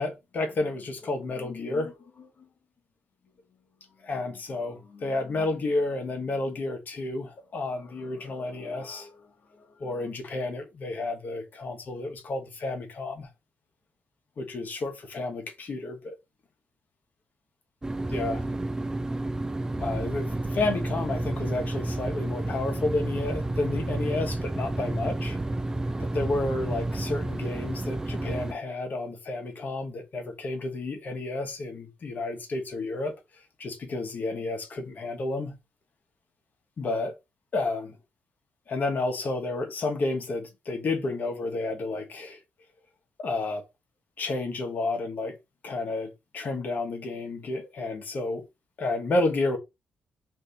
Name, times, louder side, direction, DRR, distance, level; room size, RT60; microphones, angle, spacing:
voice 1, 0.0-2.3 4.0-9.1 9.8-13.3 14.4-16.2 18.1-18.4 19.8-25.4 26.0-33.1 33.6-35.6 36.8-37.1 37.5-38.0 38.7-42.4 43.2-43.6 44.2-45.4 45.6-48.4 48.8-49.6, left 2 dB, 55° left, 1.0 m, -31 dB
sound 1, 17.8-28.5, right 2 dB, 15° right, 0.4 m, -30 dB
2.7 x 2.6 x 3.4 m
cardioid pair, 65°, 4 cm